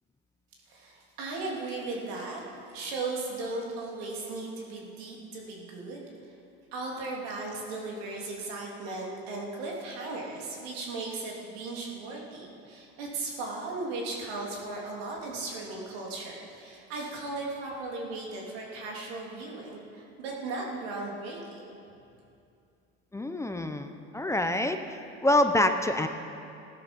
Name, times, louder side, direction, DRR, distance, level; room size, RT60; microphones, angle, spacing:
voice 1, 0.7-2.4 2.7-6.0 6.7-21.8, right 3 dB, 85° right, -2 dB, 3.1 m, -37 dB
voice 2, 23.1-24.8 25.2-26.1, left 1 dB, 10° left, 7 dB, 0.7 m, -26 dB
16.0 x 12.5 x 5.3 m, 2.6 s
supercardioid pair, 105°, 31 cm